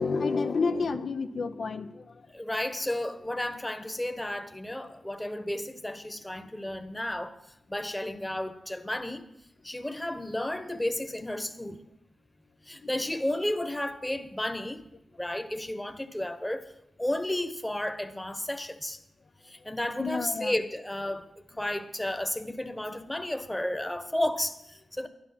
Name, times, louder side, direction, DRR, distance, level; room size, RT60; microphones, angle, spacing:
voice 1, 0.0-2.3 20.0-20.5, left 4 dB, 65° left, 0.7 m, -30 dB
voice 2, 2.3-7.4 7.7-9.2 9.6-11.8 12.7-14.9 15.2-16.7 17.0-19.0 19.4-21.3 21.6-25.1, left 1 dB, 10° left, 1.2 m, -32 dB
12.0 x 11.0 x 5.9 m
cardioid pair, 65°, 0 cm